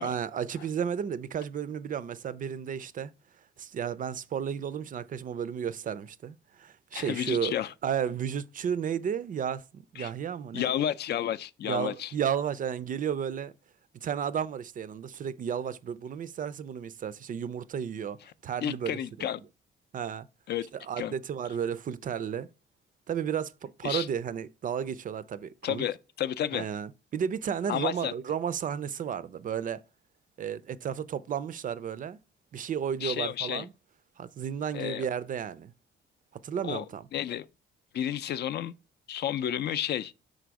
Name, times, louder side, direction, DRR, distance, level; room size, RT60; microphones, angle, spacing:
voice 1, 0.0-3.1 3.6-7.5 7.8-10.7 11.6-13.5 13.9-18.2 18.4-19.3 19.9-20.3 20.7-22.5 23.1-25.8 26.5-29.8 30.4-32.2 32.5-33.7 34.2-35.7 36.4-37.1, right 8 dB, 45° right, 0.4 m, -33 dB
voice 2, 6.9-7.7 10.0-10.1 10.5-12.1 18.6-19.4 20.5-20.6 21.0-21.1 23.8-24.1 25.6-26.6 27.7-28.1 33.0-33.7 34.7-35.0 36.6-36.8 37.1-37.5 37.9-38.7 39.1-40.1, left 10 dB, 55° left, 0.4 m, -31 dB
5.1 x 4.1 x 4.6 m
cardioid pair, 90°, 20 cm